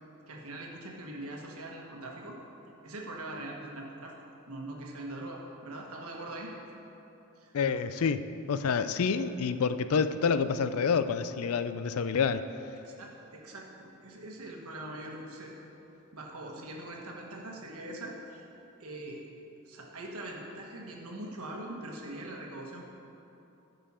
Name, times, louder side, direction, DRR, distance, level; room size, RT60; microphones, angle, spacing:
voice 1, 0.3-2.4 2.8-4.1 4.5-6.5 7.4-7.6 12.8-15.6 16.1-18.5 18.8-19.2 19.6-22.8, right 1 dB, 75° right, -1 dB, 1.4 m, -42 dB
voice 2, 7.5-8.2 8.5-12.4, left 5 dB, 70° left, 12 dB, 0.4 m, -28 dB
14.5 x 5.5 x 4.3 m, 2.9 s
head